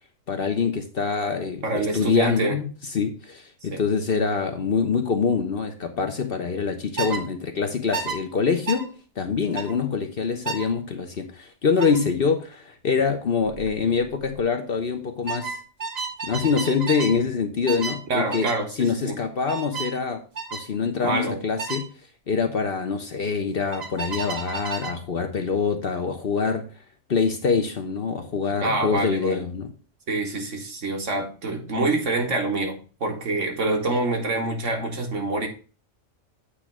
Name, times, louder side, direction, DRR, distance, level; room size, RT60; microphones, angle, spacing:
voice 1, 0.3-1.6 1.9-15.6 16.2-18.5 18.8-20.2 20.5-21.9 22.3-26.7 27.1-29.7, left 5 dB, 50° left, 0.9 m, -25 dB
voice 2, 1.6-2.6 3.7-3.8 18.1-19.2 21.0-21.4 28.6-29.4 30.1-35.5, right 2 dB, 65° right, 1.6 m, -26 dB
sound 1, 7.0-7.2 7.9-8.2 8.7-8.9 9.6-9.7 10.5-10.7 11.8-12.0 13.5-13.7 14.0-14.4 15.3-17.2 17.7-18.0 18.3-18.6 19.5-20.0 20.4-20.7 21.6-21.9 23.7-25.0, right 4 dB, 35° right, 0.9 m, -32 dB
8.5 x 3.2 x 5.9 m
omnidirectional pair, 1.4 m